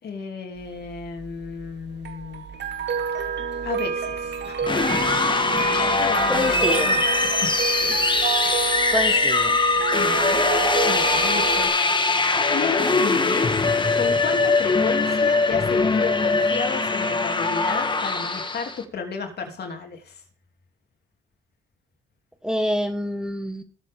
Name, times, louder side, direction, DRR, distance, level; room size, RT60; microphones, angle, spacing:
voice 1, 0.0-2.5 3.6-4.6 5.6-7.5 7.8-8.0 8.4-9.0 9.9-10.5 10.9-11.7 12.5-13.5 14.0-20.2, left 5 dB, 55° left, 4 dB, 3.0 m, -32 dB
sound 1, 0.6-11.7, right 6 dB, 65° right, 2.2 m, -29 dB
sound 2, 4.6-18.8, left 3 dB, 25° left, 1.5 m, -22 dB
voice 2, 6.3-6.9 8.9-9.6 22.4-23.6, equal, 5° right, 7 dB, 1.6 m, -27 dB
19.0 x 7.3 x 3.7 m, 0.38 s
cardioid pair, 90°, 20 cm